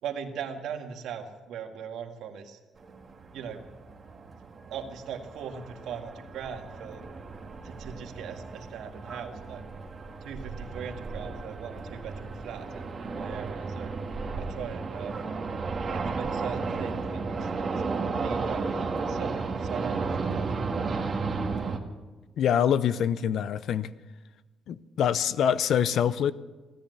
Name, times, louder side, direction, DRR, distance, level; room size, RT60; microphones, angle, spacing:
voice 1, 0.0-2.6 3.3-3.6 4.7-7.1 7.6-9.6 10.2-13.9 14.3-15.2 15.9-17.8 18.2-21.0, right 7 dB, 80° right, 4 dB, 1.9 m, -40 dB
sound 1, 2.8-21.8, right 4 dB, 40° right, 1.7 m, -34 dB
voice 2, 22.4-23.9 24.7-26.3, left 9 dB, 70° left, 16 dB, 0.6 m, -25 dB
16.5 x 10.5 x 8.2 m, 1.2 s
cardioid pair, 90°, 0 cm